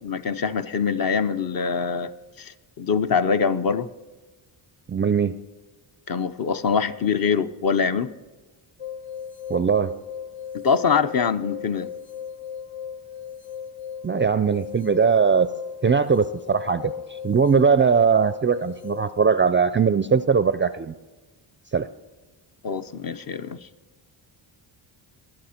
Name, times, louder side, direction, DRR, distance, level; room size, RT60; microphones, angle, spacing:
voice 1, 0.0-2.1 2.4-3.9 6.1-8.1 10.5-11.9 22.6-23.6, left 6 dB, 45° left, 10 dB, 0.8 m, -24 dB
voice 2, 4.9-5.4 9.5-9.9 14.0-15.5 15.8-16.9 17.2-20.9 21.7-21.9, right 6 dB, 25° right, 13 dB, 0.4 m, -20 dB
sound 1, 8.8-19.2, left 8 dB, 70° left, 1.4 m, -36 dB
20.5 x 7.7 x 4.3 m, 1.2 s
cardioid pair, 80°, 49 cm